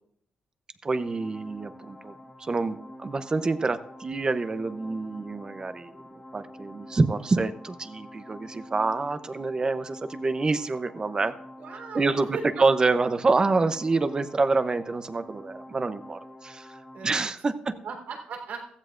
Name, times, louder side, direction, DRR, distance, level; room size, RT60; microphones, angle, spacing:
voice 1, 0.8-2.1 2.4-5.9 6.3-11.3 11.9-16.7 17.0-17.7, right 3 dB, 25° right, 11 dB, 0.7 m, -27 dB
sound 1, 0.9-17.1, left 1 dB, 10° left, 1.1 m, -47 dB
voice 2, 11.6-12.6 16.9-17.3 17.8-18.6, right 5 dB, 80° right, 1 dB, 3.7 m, -38 dB
16.0 x 15.0 x 2.5 m, 0.67 s
cardioid pair, 120°, 3 cm